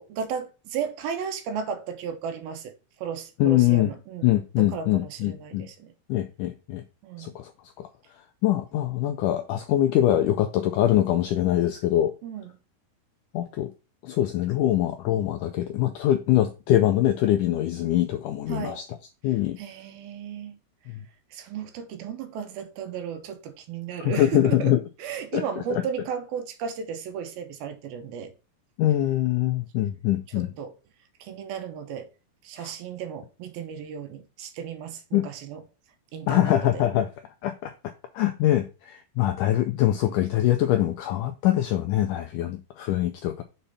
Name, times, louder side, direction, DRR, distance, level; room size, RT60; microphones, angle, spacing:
voice 1, 0.0-2.7 3.0-4.3 4.6-5.9 7.0-7.3 12.2-12.5 18.5-18.8 19.6-20.6 21.3-24.7 25.0-28.3 30.4-30.7 31.2-32.1 32.4-35.6 36.1-36.8, right 7 dB, 80° right, 2.9 m, -34 dB
voice 2, 3.4-3.9 4.2-5.7 6.1-6.8 7.2-7.5 7.8-7.9 8.4-12.1 13.3-13.7 14.0-18.8 19.2-19.6 20.9-21.0 24.0-24.8 25.3-25.4 25.7-25.8 28.8-30.5 32.6-32.7 35.1-35.3 36.3-37.1 37.4-37.7 38.1-43.4, left 13 dB, 90° left, 1.8 m, -23 dB
6.8 x 4.3 x 5.4 m
omnidirectional pair, 4.4 m